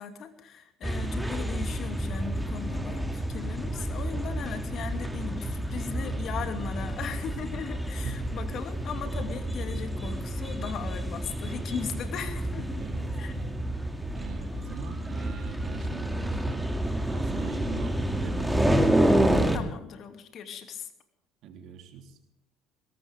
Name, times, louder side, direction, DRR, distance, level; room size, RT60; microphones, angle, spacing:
voice 1, 0.0-12.8 13.2-13.3 19.5-20.9, left 7 dB, 55° left, 8 dB, 2.7 m, -38 dB
sound 1, 0.8-19.6, right 1 dB, 5° right, 2.6 m, -29 dB
voice 2, 8.0-8.5 12.8-13.5 14.1-16.6 17.1-18.8 21.4-22.2, right 6 dB, 60° right, 5 dB, 3.4 m, -43 dB
22.0 x 18.0 x 3.6 m, 0.80 s
hypercardioid pair, 65°, 0 cm